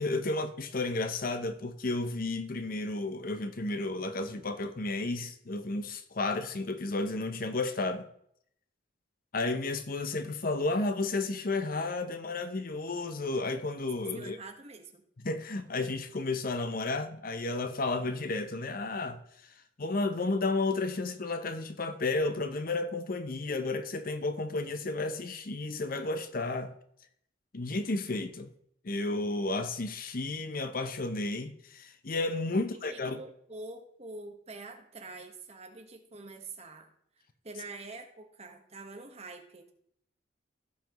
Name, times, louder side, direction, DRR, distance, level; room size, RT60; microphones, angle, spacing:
voice 1, 0.0-8.1 9.3-14.4 15.2-19.2 19.8-26.7 27.5-28.5 28.8-33.2, left 2 dB, 50° left, 0.8 m, -32 dB
voice 2, 14.1-15.0 32.5-36.9 37.4-39.7, right 3 dB, 35° right, 1.3 m, -46 dB
16.5 x 5.8 x 3.0 m
head